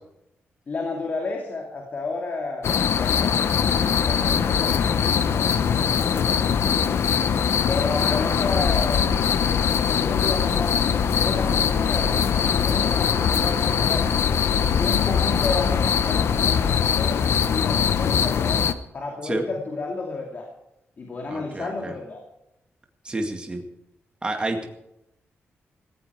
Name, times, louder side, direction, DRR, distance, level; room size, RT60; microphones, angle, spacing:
voice 1, 0.7-3.6 4.0-7.1 7.7-9.1 9.8-12.1 12.6-14.1 14.8-18.7 18.9-20.5 21.0-22.2, left 3 dB, 40° left, 1 dB, 2.6 m, -32 dB
sound 1, 2.6-18.7, left 7 dB, 70° left, 0.9 m, -22 dB
sound 2, 10.9-16.6, right 4 dB, 45° right, 3.1 m, -45 dB
voice 2, 21.3-21.9 23.0-23.6 24.2-24.7, right 2 dB, 20° right, 3 dB, 2.0 m, -29 dB
17.5 x 15.0 x 4.8 m, 0.84 s
wide cardioid pair, 150°, 4 cm